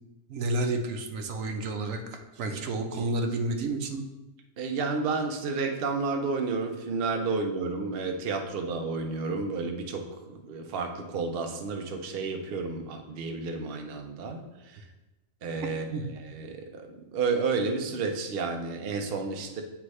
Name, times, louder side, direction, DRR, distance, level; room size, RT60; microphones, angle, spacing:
voice 1, 0.3-4.0 15.9-16.0, right 2 dB, 80° right, 4 dB, 1.1 m, -30 dB
voice 2, 4.6-14.8 15.4-19.6, right 4 dB, 55° right, 4 dB, 0.8 m, -31 dB
9.4 x 3.5 x 3.2 m, 1.0 s
omnidirectional pair, 1.4 m